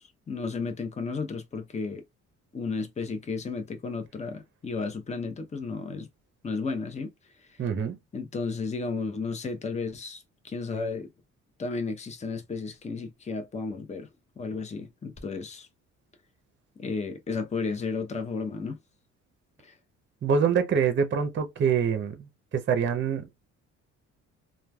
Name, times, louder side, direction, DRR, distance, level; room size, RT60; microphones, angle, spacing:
voice 1, 0.0-2.0 2.5-6.1 6.4-7.1 8.1-11.1 11.6-14.1 14.4-15.7 16.8-18.8 19.6-19.7, left 4 dB, 25° left, 0.6 m, -33 dB
voice 2, 7.6-8.0 20.2-23.3, right 6 dB, 40° right, 0.6 m, -25 dB
3.1 x 2.2 x 2.2 m
cardioid pair, 90°, 30 cm